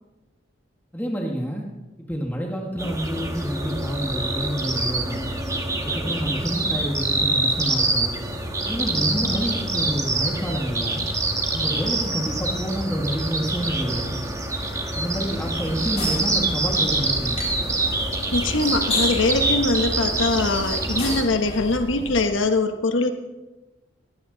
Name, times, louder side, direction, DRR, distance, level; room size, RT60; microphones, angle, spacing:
voice 1, 0.9-1.7 2.1-5.3 5.8-8.1 8.7-11.0 11.5-14.2 14.9-17.4, equal, 10° left, 0 dB, 1.7 m, -28 dB
sound 1, 2.8-21.2, right 2 dB, 15° right, 1.7 m, -26 dB
sound 2, 15.5-22.3, left 2 dB, 35° left, 6.7 m, -33 dB
voice 2, 18.3-23.1, left 2 dB, 85° left, 7 dB, 1.2 m, -22 dB
21.5 x 15.5 x 4.0 m, 1.1 s
head